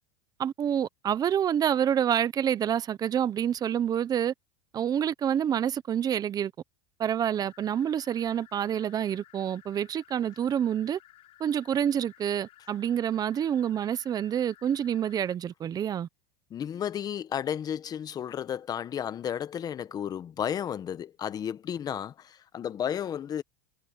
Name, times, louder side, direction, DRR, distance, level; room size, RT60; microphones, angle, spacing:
voice 1, 0.4-4.3 4.7-6.5 7.0-11.0 11.4-16.1, right 9 dB, 25° right, 1.1 m, -27 dB
sound 1, 7.5-15.4, left 15 dB, 45° left, 7.3 m, -57 dB
voice 2, 16.5-23.4, left 9 dB, 25° left, 1.2 m, -33 dB
supercardioid pair, 125°, 14 cm